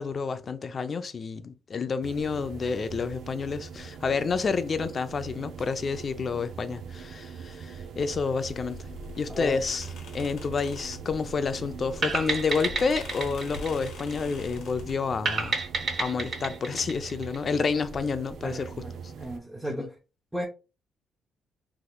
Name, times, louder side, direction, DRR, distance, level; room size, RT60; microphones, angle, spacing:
voice 1, 0.0-8.9 9.2-15.6 16.0-18.7 19.7-19.9, left 5 dB, 45° left, 0.4 m, -29 dB
sound 1, 2.0-19.4, right 6 dB, 75° right, 0.4 m, -42 dB
sound 2, 8.4-14.9, left 3 dB, 75° left, 1.1 m, -44 dB
voice 2, 9.3-9.6 18.4-19.9 20.3-20.5, right 1 dB, 5° right, 0.7 m, -35 dB
sound 3, 12.0-14.6 15.3-17.8, right 4 dB, 50° right, 1.4 m, -31 dB
3.5 x 2.9 x 2.2 m
cardioid pair, 90°, 0 cm